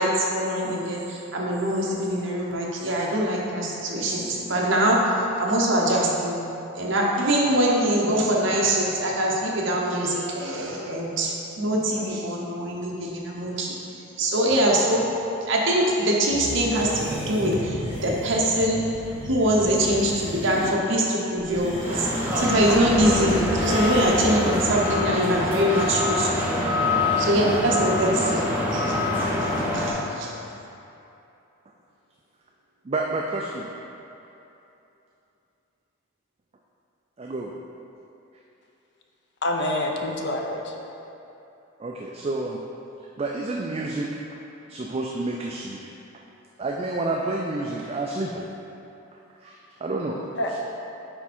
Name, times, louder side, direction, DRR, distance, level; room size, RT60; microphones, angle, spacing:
voice 1, 0.0-6.4 6.7-15.1 15.5-18.9 19.2-26.5 27.2-29.0 29.4-30.3, right 1 dB, 60° right, -3 dB, 1.0 m, -23 dB
sound 1, 16.3-20.7 21.4-22.7 23.6-24.6, equal, 30° left, 1.3 m, -34 dB
sound 2, 21.8-29.9, left 1 dB, 10° right, 1.1 m, -25 dB
voice 2, 32.9-33.7 37.2-37.5 41.8-42.6 43.2-44.1 44.7-45.8 46.6-48.5 49.4-50.2, right 2 dB, 30° right, -1 dB, 0.3 m, -29 dB
voice 3, 39.4-40.7 50.4-50.6, left 1 dB, 55° left, 2 dB, 0.6 m, -27 dB
8.8 x 3.5 x 4.3 m, 2.9 s
head